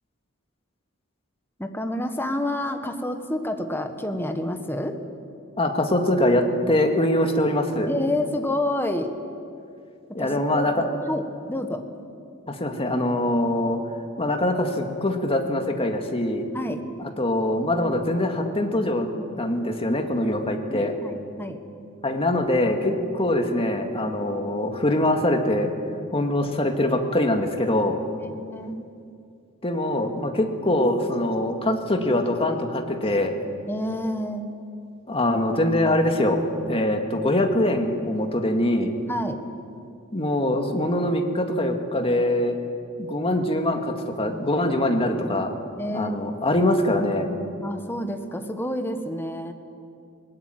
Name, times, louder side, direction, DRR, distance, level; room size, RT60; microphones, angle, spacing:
voice 1, 1.6-5.0 7.9-9.1 10.2-11.8 16.5-16.8 20.7-21.6 28.2-28.8 33.7-34.5 39.1-39.4 45.8-46.5 47.6-49.5, left 1 dB, 10° left, 6 dB, 1.4 m, -29 dB
voice 2, 5.6-7.9 10.1-10.9 12.5-13.8 14.2-16.5 17.0-19.1 19.4-20.9 22.0-25.7 26.1-28.0 29.6-33.4 35.1-36.4 36.7-38.9 40.1-42.6 43.0-45.5 45.9-47.3, left 1 dB, 25° left, 4 dB, 2.1 m, -23 dB
21.5 x 19.5 x 9.1 m, 2.4 s
head